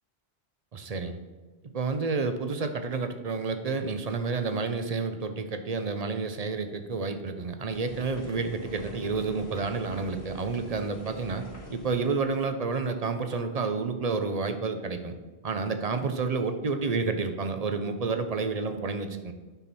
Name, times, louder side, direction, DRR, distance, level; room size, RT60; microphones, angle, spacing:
voice 1, 0.7-1.2 1.7-11.4 11.7-15.1 15.4-19.3, right 4 dB, 45° right, 8 dB, 0.6 m, -30 dB
sound 1, 7.7-12.3, left 1 dB, 90° left, 2.2 m, -45 dB
9.1 x 6.1 x 4.1 m, 1.3 s
omnidirectional pair, 1.1 m